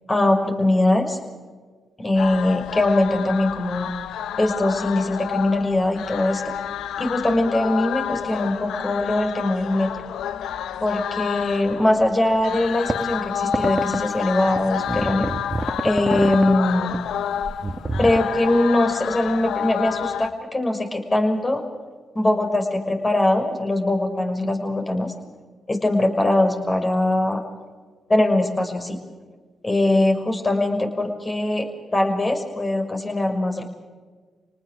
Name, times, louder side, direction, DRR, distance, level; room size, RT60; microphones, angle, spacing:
voice 1, 0.1-1.2 2.0-3.9 4.4-6.4 7.0-9.9 10.8-15.3 15.8-17.0 18.0-21.6 22.1-25.1 25.7-27.4 28.1-29.0 29.6-33.6, left 1 dB, 30° left, 4 dB, 6.0 m, -21 dB
sound 1, 2.1-20.3, left 9 dB, 80° left, 0.8 m, -30 dB
sound 2, 12.9-13.0 13.5-14.0 14.6-16.6 16.9-17.1 17.4-18.2, right 2 dB, 25° right, 1.6 m, -27 dB
28.5 x 19.5 x 6.6 m, 1.4 s
supercardioid pair, 45°, 0 cm